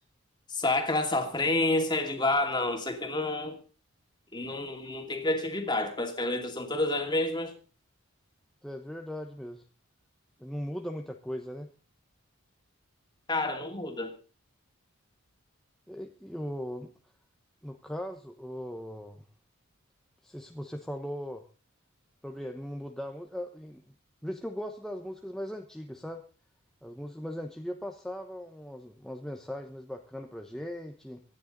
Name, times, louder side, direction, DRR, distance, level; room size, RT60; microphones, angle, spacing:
voice 1, 0.5-3.6 4.3-7.6 13.3-14.1, left 2 dB, 20° left, 4 dB, 2.5 m, -29 dB
voice 2, 8.6-9.7 10.4-11.7 15.9-16.9 17.6-19.2 20.2-21.4 22.2-23.9 24.2-26.2 26.8-31.2, equal, ahead, 3 dB, 1.0 m, -39 dB
25.5 x 10.0 x 4.0 m, 0.35 s
head